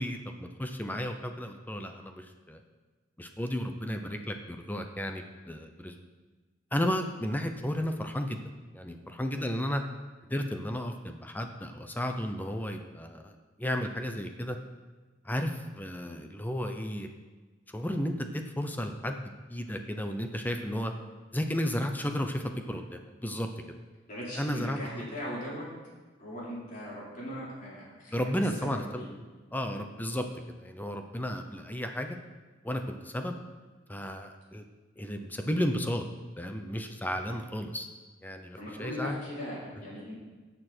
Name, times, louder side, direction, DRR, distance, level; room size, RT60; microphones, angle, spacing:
voice 1, 0.0-2.6 3.2-5.9 6.7-8.4 8.7-9.8 10.3-13.3 13.6-14.6 15.2-17.1 17.7-19.2 19.5-20.9 21.3-23.5 24.4-24.8 28.1-29.0 29.5-30.2 30.6-32.2 32.6-33.4 33.9-34.6 35.0-36.0 36.4-37.9 38.2-39.2, equal, 10° left, 5 dB, 0.7 m, -33 dB
voice 2, 24.1-25.7 26.2-29.1 37.2-37.5 38.6-40.2, left 1 dB, 45° left, -6 dB, 4.2 m, -39 dB
16.5 x 6.9 x 4.4 m, 1.3 s
head